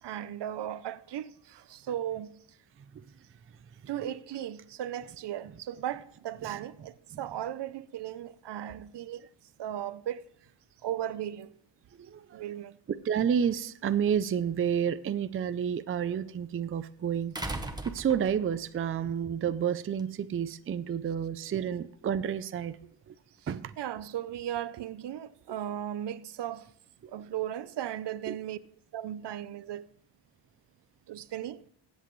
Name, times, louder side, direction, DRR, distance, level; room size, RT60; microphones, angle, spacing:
voice 1, 0.0-2.6 3.9-9.3 9.6-10.2 10.8-11.6 12.3-12.8 23.8-26.7 27.1-28.6 28.9-29.9 31.1-31.6, right 11 dB, 70° right, 0.7 m, -36 dB
voice 2, 12.0-12.4 12.9-17.6 17.9-22.8 23.1-23.2 23.5-23.7 28.3-28.4, right 8 dB, 30° right, 0.4 m, -30 dB
sound 1, 14.1-14.2 17.3-18.6 20.0-20.1, right 2 dB, 10° right, 0.9 m, -37 dB
23.5 x 8.2 x 3.1 m
wide cardioid pair, 165°, 43 cm